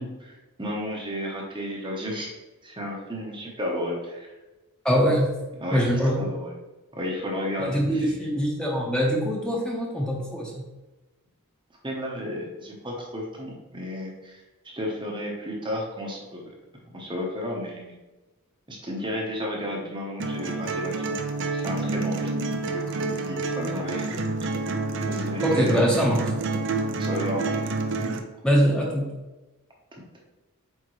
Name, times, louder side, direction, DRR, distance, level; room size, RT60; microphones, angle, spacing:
voice 1, 0.0-2.3 2.6-4.3 5.6-5.9 6.2-6.5 6.9-8.1 11.8-16.4 16.9-17.9 18.7-21.2 21.5-24.6 25.0-26.2 27.0-27.8 29.9-30.0, left 1 dB, 20° right, -2 dB, 1.0 m, -33 dB
voice 2, 4.8-5.4 5.7-6.2 7.6-10.7 25.4-26.3 28.4-29.2, equal, 5° left, -2 dB, 1.0 m, -23 dB
sound 1, 20.2-28.2, right 3 dB, 55° right, 0.6 m, -28 dB
8.3 x 3.6 x 3.1 m, 1.1 s
head